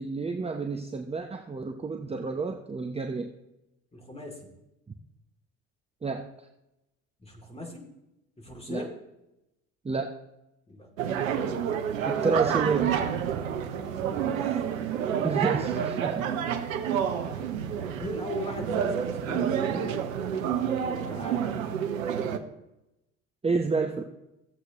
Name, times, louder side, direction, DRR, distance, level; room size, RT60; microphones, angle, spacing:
voice 1, 0.0-3.3 6.0-6.3 8.7-8.8 9.8-10.1 12.0-13.0 15.2-16.1 23.4-24.0, right 4 dB, 15° right, 5 dB, 0.8 m, -29 dB
voice 2, 3.9-4.5 7.2-7.9 8.4-8.9 10.7-11.6 14.0-14.6 15.7-16.0 17.2-20.0 20.5-21.6, left 1 dB, 15° left, 1 dB, 2.8 m, -40 dB
sound 1, 11.0-22.4, right 8 dB, 80° right, 0.8 m, -29 dB
15.0 x 7.9 x 3.0 m, 0.91 s
hypercardioid pair, 60°, 40 cm